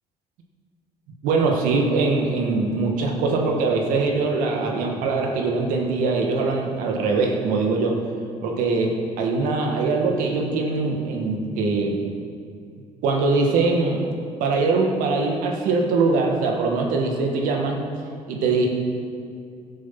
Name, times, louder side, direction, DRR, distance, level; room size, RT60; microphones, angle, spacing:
voice 1, 1.2-8.0 8.4-12.0 13.0-14.0 14.4-17.9 18.3-18.7, right 3 dB, 85° right, 1 dB, 1.7 m, -22 dB
12.5 x 7.4 x 6.0 m, 2.4 s
cardioid pair, 85°, 14 cm